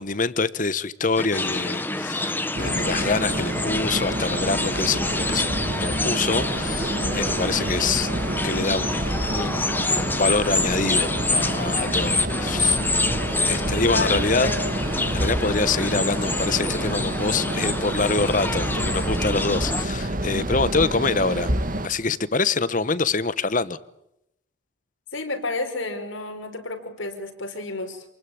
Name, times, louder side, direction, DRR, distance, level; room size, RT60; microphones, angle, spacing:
voice 1, 0.0-2.3 2.6-5.5 5.8-8.1 8.4-9.8 10.2-12.8 13.4-14.5 15.1-21.5 21.8-23.8, left 4 dB, 40° left, 16 dB, 1.1 m, -25 dB
sound 1, 1.2-19.8, left 2 dB, 10° left, 1.3 m, -27 dB
sound 2, 2.5-21.9, right 1 dB, 40° right, 1.8 m, -28 dB
voice 2, 13.8-14.7 25.1-28.0, left 2 dB, 80° left, 5 dB, 5.0 m, -30 dB
28.0 x 21.0 x 8.7 m, 0.82 s
head